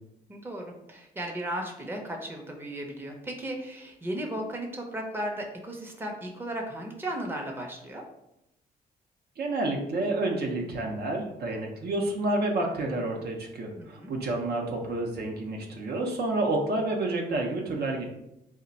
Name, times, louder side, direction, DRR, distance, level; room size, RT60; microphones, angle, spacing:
voice 1, 0.3-8.0 13.8-14.1, right 1 dB, 10° right, 1 dB, 0.6 m, -35 dB
voice 2, 9.4-18.0, right 2 dB, 65° right, 1 dB, 0.6 m, -29 dB
2.4 x 2.1 x 3.9 m, 0.86 s
cardioid pair, 80°, 18 cm